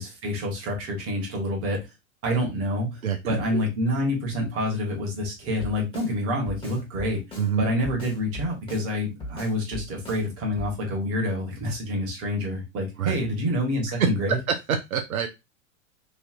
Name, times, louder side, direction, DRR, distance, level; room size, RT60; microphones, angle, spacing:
voice 1, 0.0-1.8 2.2-3.0 3.3-7.2 7.6-14.4, left 1 dB, 35° right, 0 dB, 1.4 m, -27 dB
voice 2, 3.0-3.6 7.4-7.7 13.0-13.1 14.0-14.1 14.7-15.3, right 7 dB, 85° right, 5 dB, 0.6 m, -26 dB
Drum kit, 5.6-6.1 6.5-7.5 7.8-8.9 9.2-10.2 10.6-10.7, left 1 dB, 10° left, 1.2 m, -38 dB
3.2 x 2.6 x 2.5 m, 0.24 s
hypercardioid pair, 105°, 41 cm